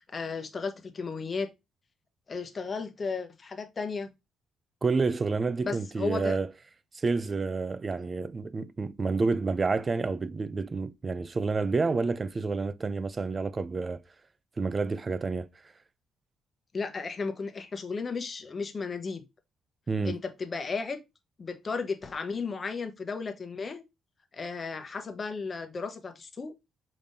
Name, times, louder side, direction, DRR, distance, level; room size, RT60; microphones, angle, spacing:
voice 1, 0.0-1.5 2.3-4.1 5.6-6.4 16.7-19.2 20.0-21.0 21.4-23.8 24.3-26.5, left 4 dB, 35° left, 0.9 m, -34 dB
voice 2, 4.8-6.5 6.9-14.0 14.6-15.5 19.9-20.2, right 4 dB, 30° right, 0.4 m, -29 dB
5.0 x 3.5 x 2.6 m
cardioid pair, 90°, 0 cm